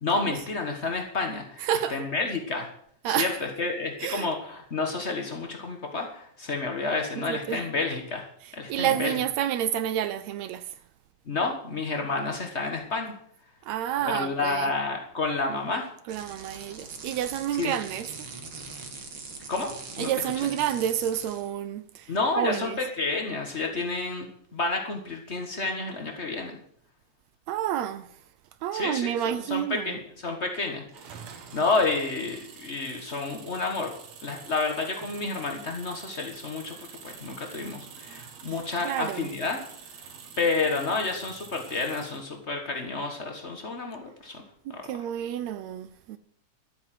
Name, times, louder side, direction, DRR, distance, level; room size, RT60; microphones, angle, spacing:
voice 1, 0.0-1.6 1.9-2.7 3.0-8.3 8.5-9.1 11.3-13.1 14.0-15.9 17.6-17.7 19.5-19.7 20.0-20.1 22.1-26.6 28.7-30.8 31.2-33.9 34.2-36.8 37.0-39.6 40.4-44.4 44.7-44.8, left 3 dB, 80° left, 0.6 m, -30 dB
voice 2, 1.6-2.0 3.0-3.4 4.0-4.3 7.2-7.7 8.7-10.7 13.7-14.7 16.1-18.3 20.0-22.8 27.5-28.1 28.6-30.0 38.8-39.3 44.7-46.2, right 10 dB, 75° right, 1.7 m, -29 dB
sound 1, 16.1-21.5, right 4 dB, 45° right, 2.3 m, -42 dB
sound 2, 30.9-42.3, right 6 dB, 60° right, 2.6 m, -46 dB
12.5 x 8.7 x 7.6 m
omnidirectional pair, 3.6 m